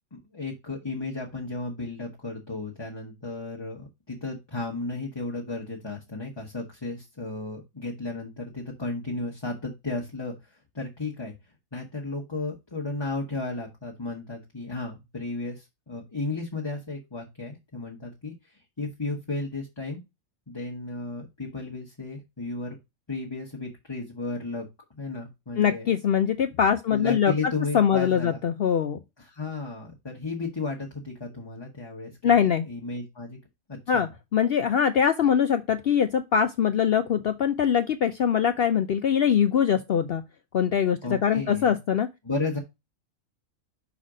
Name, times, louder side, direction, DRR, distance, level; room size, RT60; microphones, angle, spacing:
voice 1, 0.1-11.3 11.7-20.0 20.5-22.8 23.1-24.7 25.0-25.9 26.9-28.4 29.2-33.4 33.7-34.1 41.0-41.8 42.2-42.6, left 3 dB, 20° left, 1.1 m, -34 dB
voice 2, 25.6-27.3 27.7-29.0 32.2-32.7 33.9-40.2 40.5-42.1, left 8 dB, 65° left, 0.6 m, -23 dB
5.8 x 4.2 x 4.9 m
omnidirectional pair, 1.5 m